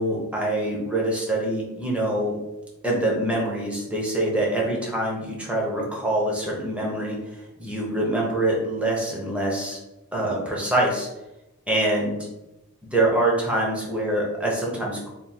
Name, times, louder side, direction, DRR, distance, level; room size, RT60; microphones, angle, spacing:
voice 1, 0.0-2.4 2.8-9.8 10.1-11.1 11.7-12.2 12.9-15.1, right 1 dB, 5° right, -3 dB, 0.7 m, -25 dB
3.5 x 2.2 x 4.2 m, 0.97 s
head